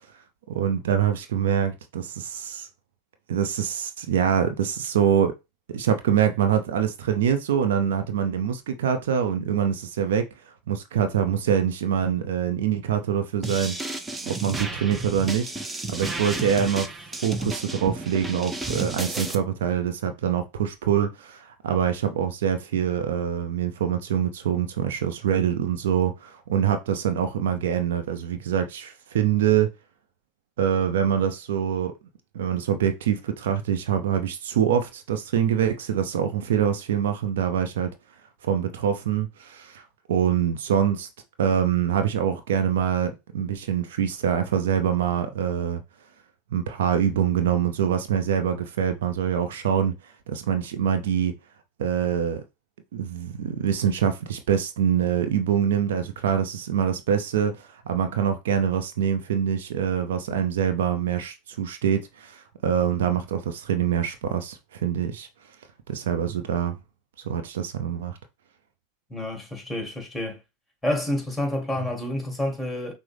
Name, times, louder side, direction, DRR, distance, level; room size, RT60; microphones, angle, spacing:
voice 1, 0.5-2.7 3.3-5.3 5.7-10.3 10.7-13.8 14.2-15.5 15.9-16.9 17.2-29.7 30.6-31.9 32.3-37.9 38.4-39.8 40.1-41.1 41.4-45.8 46.5-49.9 50.3-51.3 51.8-52.4 52.9-65.3 65.9-66.8 67.2-68.2, right 8 dB, 75° right, 0.5 m, -25 dB
sound 1, 13.4-19.3, right 2 dB, 15° right, 0.6 m, -32 dB
voice 2, 69.1-70.4 70.8-72.9, left 1 dB, ahead, 1.9 m, -28 dB
6.0 x 2.0 x 3.3 m
hypercardioid pair, 90°, 0 cm